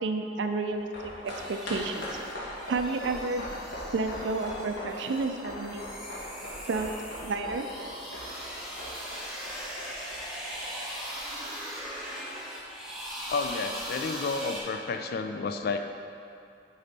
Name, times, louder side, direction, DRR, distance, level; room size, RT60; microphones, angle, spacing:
voice 1, 0.0-2.2 2.7-3.4 3.9-5.8 6.7-6.9 7.2-7.7, right 3 dB, 70° right, 6 dB, 0.4 m, -31 dB
sound 1, 0.6-11.2 11.5-11.6, equal, 90° left, 1.4 m, -41 dB
sound 2, 1.3-14.6, equal, ahead, 1.5 m, -40 dB
voice 2, 13.3-15.9, left 4 dB, 60° left, 7 dB, 0.4 m, -31 dB
8.5 x 4.1 x 4.1 m, 2.5 s
head